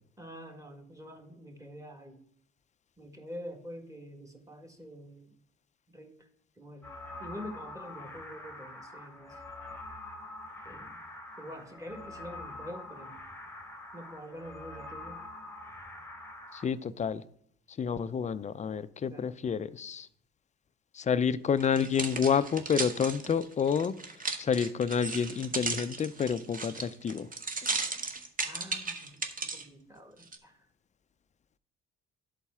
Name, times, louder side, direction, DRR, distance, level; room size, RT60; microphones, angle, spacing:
voice 1, 0.2-2.2 3.0-5.3 5.9-6.3 6.6-6.9 7.2-9.4 10.6-11.0 11.4-13.2 13.9-15.2 19.0-19.3 28.4-29.2 29.5-30.7, equal, 10° right, 1.6 m, -46 dB
sound 1, 6.8-16.7, left 2 dB, 5° left, 1.2 m, -45 dB
voice 2, 16.5-17.2 17.8-20.1 20.9-23.9 24.4-27.3, left 7 dB, 25° left, 0.4 m, -29 dB
sound 2, 21.6-29.6 30.2-30.4, right 4 dB, 25° right, 0.9 m, -35 dB
11.5 x 4.1 x 3.5 m
supercardioid pair, 75°, 32 cm